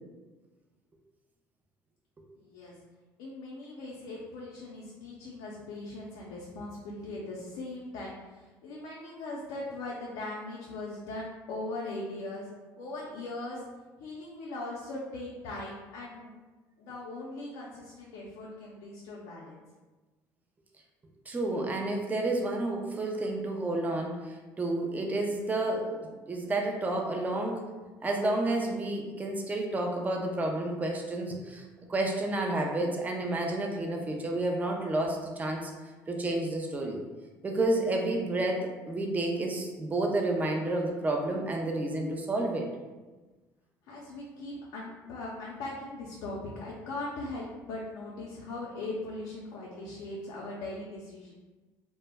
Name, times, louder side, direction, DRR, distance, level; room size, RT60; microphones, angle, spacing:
voice 1, 2.4-2.8 3.2-12.5 12.7-13.7 14.0-16.3 16.8-19.6 43.9-51.3, left 2 dB, 75° left, -4 dB, 0.5 m, -40 dB
voice 2, 21.3-27.7 28.0-31.6 31.9-35.7 36.1-37.0 37.4-42.7, right 2 dB, 20° right, 1 dB, 0.4 m, -30 dB
2.1 x 2.0 x 3.3 m, 1.2 s
supercardioid pair, 80°, 8 cm